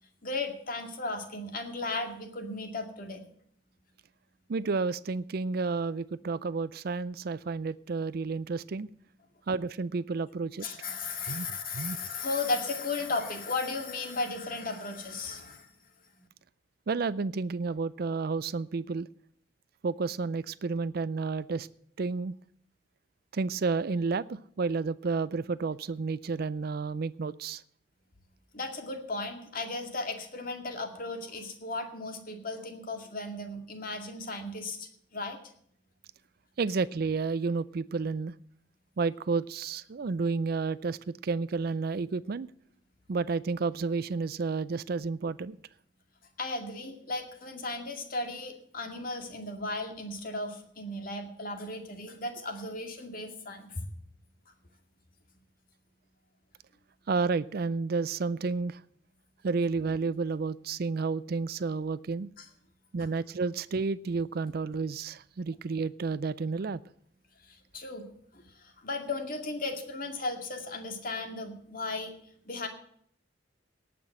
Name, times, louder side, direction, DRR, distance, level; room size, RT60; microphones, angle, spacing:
voice 1, 0.2-3.2 10.6-15.7 28.5-35.4 46.4-53.9 62.4-62.5 63.0-63.1 67.5-68.0 68.3-72.1 72.5-72.7, left 3 dB, 50° left, 5 dB, 2.2 m, -35 dB
voice 2, 4.5-8.9 9.5-10.7 11.3-11.5 11.7-12.0 16.9-19.1 19.8-21.7 22.0-22.3 23.3-27.6 36.6-38.3 39.0-42.5 43.1-45.6 57.1-58.8 59.4-62.3 62.9-66.8, right 4 dB, 55° right, 16 dB, 0.4 m, -31 dB
18.0 x 6.1 x 7.6 m, 0.65 s
head